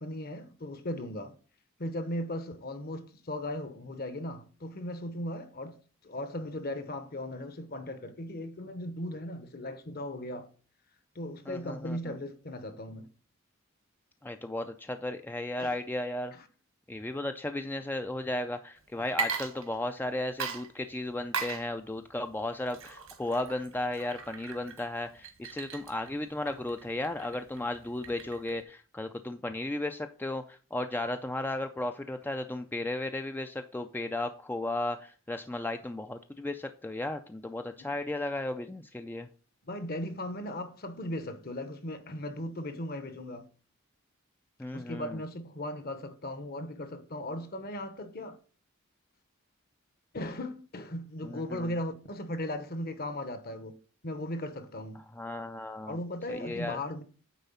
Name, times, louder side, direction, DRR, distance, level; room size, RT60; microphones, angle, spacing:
voice 1, 0.0-1.3 1.8-5.8 6.0-10.5 11.1-13.1 15.6-15.8 16.3-16.5 37.8-37.9 39.6-43.5 44.7-48.4 50.1-53.8 54.0-55.0 55.9-57.0, left 1 dB, 45° left, 1.0 m, -37 dB
voice 2, 11.5-12.2 14.2-16.3 16.9-39.3 44.6-45.2 51.2-51.8 55.0-56.0 56.3-56.8, left 1 dB, 10° left, 0.3 m, -35 dB
Water / Liquid, 19.0-20.1 20.4-28.6, right 5 dB, 80° right, 1.5 m, -39 dB
9.2 x 4.0 x 5.5 m
head